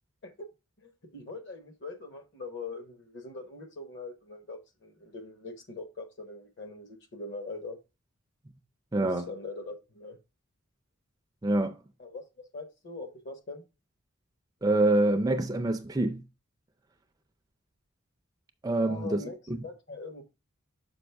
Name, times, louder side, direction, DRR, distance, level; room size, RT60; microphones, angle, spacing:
voice 1, 0.8-7.8 9.0-10.2 12.0-13.6 18.8-20.2, left 3 dB, 55° left, 1.2 m, -42 dB
voice 2, 8.9-9.3 11.4-11.8 14.6-16.2 18.6-19.2 19.5-19.6, right 2 dB, 15° right, 0.4 m, -26 dB
6.2 x 4.9 x 3.4 m
head